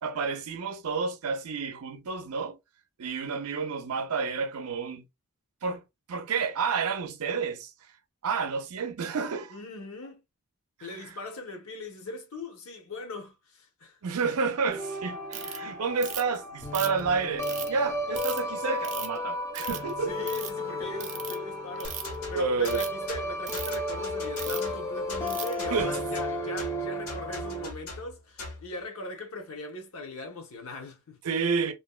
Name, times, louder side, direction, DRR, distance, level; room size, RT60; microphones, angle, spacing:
voice 1, 0.0-2.6 3.0-5.0 5.6-5.8 6.1-7.7 8.2-9.6 10.8-11.1 14.0-20.3 22.3-22.8 25.7-25.9 31.2-31.7, right 5 dB, 90° right, 0.5 m, -30 dB
voice 2, 9.5-10.2 10.8-14.0 20.0-31.2, left 2 dB, 70° left, 0.7 m, -40 dB
sound 1, 14.7-27.7, left 1 dB, 15° left, 0.5 m, -33 dB
Ratchet pawl, 15.3-15.6 16.0-16.4 16.7-17.7 18.1-18.4 18.8-19.2 19.5-19.9 20.2-20.5 21.0-21.3 21.8-22.2 22.6-22.9 23.5-23.7 24.4-24.7 25.3-25.5, right 9 dB, 30° right, 0.3 m, -37 dB
sound 2, 21.8-28.7, left 2 dB, 85° left, 1.1 m, -41 dB
2.5 x 2.1 x 2.3 m
head